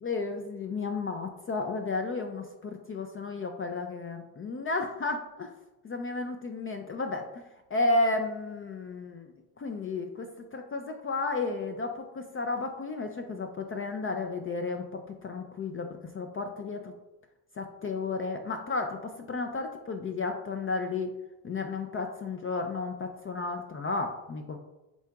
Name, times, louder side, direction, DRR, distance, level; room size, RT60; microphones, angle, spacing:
voice 1, 0.0-5.5 5.8-7.4 7.7-9.3 9.6-10.3 10.5-15.9 16.1-16.9 17.6-21.1 21.4-24.6, left 3 dB, 30° left, 5 dB, 0.4 m, -32 dB
8.0 x 2.8 x 2.3 m, 0.99 s
supercardioid pair, 80°, 47 cm